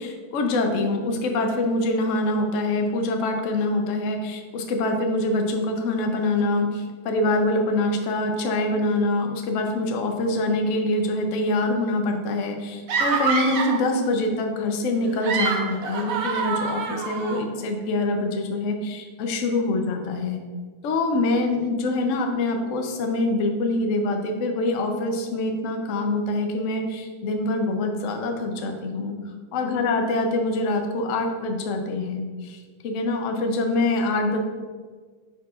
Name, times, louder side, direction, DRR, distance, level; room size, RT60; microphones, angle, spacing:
voice 1, 0.0-20.4 20.8-29.2 29.5-32.6 32.8-34.4, left 2 dB, 75° left, 4 dB, 0.7 m, -25 dB
sound 1, 12.9-13.9 15.0-17.4, right 4 dB, 65° right, 0.9 m, -26 dB
9.5 x 4.7 x 2.4 m, 1.5 s
omnidirectional pair, 2.3 m